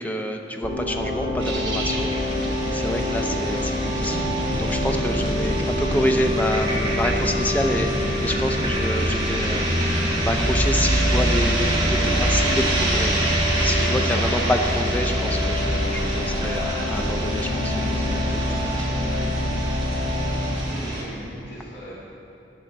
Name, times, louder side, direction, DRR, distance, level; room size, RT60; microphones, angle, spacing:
voice 1, 0.0-4.3 4.6-17.7 18.0-18.4, equal, 10° left, 4 dB, 0.6 m, -28 dB
sound 1, 0.6-20.6, left 1 dB, 70° right, 2.2 m, -26 dB
sound 2, 1.4-21.0, right 1 dB, 25° right, 2.0 m, -27 dB
voice 2, 20.5-21.9, equal, 60° left, -8 dB, 2.0 m, -40 dB
13.5 x 9.3 x 4.1 m, 3.0 s
head